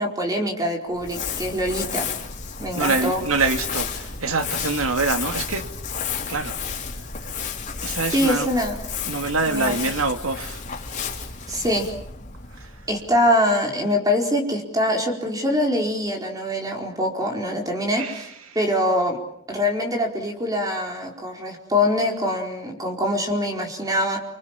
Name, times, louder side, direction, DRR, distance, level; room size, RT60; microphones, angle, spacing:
voice 1, 0.0-2.1 2.6-3.2 8.1-8.8 9.5-9.8 11.5-11.9 12.9-18.3 18.5-19.2 19.5-24.2, left 1 dB, 15° right, 4.6 m, -24 dB
Crumpling crinkling, 0.9-13.4, left 6 dB, 35° left, 3.9 m, -32 dB
voice 2, 2.8-5.7 6.3-6.5 7.8-8.5 9.0-10.6 18.0-18.2, right 3 dB, 80° right, 2.3 m, -25 dB
29.0 x 25.5 x 7.5 m
head